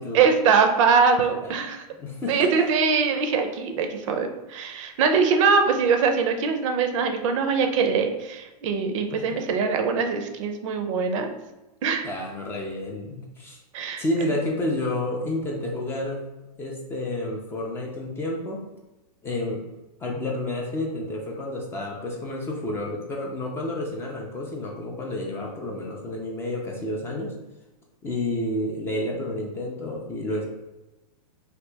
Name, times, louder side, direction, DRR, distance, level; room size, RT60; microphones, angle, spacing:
voice 1, 0.1-1.8 2.3-11.3 11.8-12.1 13.7-14.0, right 5 dB, 50° right, 6 dB, 0.5 m, -22 dB
voice 2, 1.2-1.5 2.0-2.7 9.1-9.4 12.0-13.6 14.0-16.3 16.6-18.6 19.2-19.6 20.0-27.3 28.0-30.5, left 1 dB, 10° left, -1 dB, 0.3 m, -30 dB
2.8 x 2.6 x 3.3 m, 1.0 s
hypercardioid pair, 135°, 20 cm